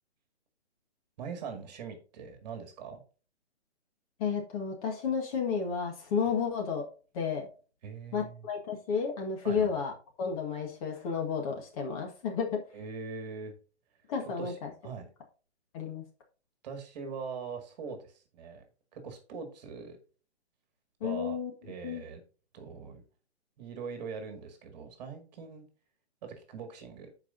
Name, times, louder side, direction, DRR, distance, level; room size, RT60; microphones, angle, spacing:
voice 1, 1.2-3.0 7.8-8.5 9.4-9.7 12.7-13.5 14.2-14.6 14.8-15.1 16.6-18.6 18.9-20.0 21.0-21.4 21.6-22.2 22.5-23.0 23.6-25.6 26.2-27.1, right 5 dB, 40° right, 6 dB, 2.0 m, -42 dB
voice 2, 4.2-6.9 7.1-7.5 8.1-9.9 10.2-12.6 14.1-14.7 15.7-16.0 21.0-21.5 21.8-22.0, left 6 dB, 35° left, 2 dB, 1.6 m, -32 dB
14.5 x 4.9 x 2.6 m, 0.36 s
hypercardioid pair, 140°, 33 cm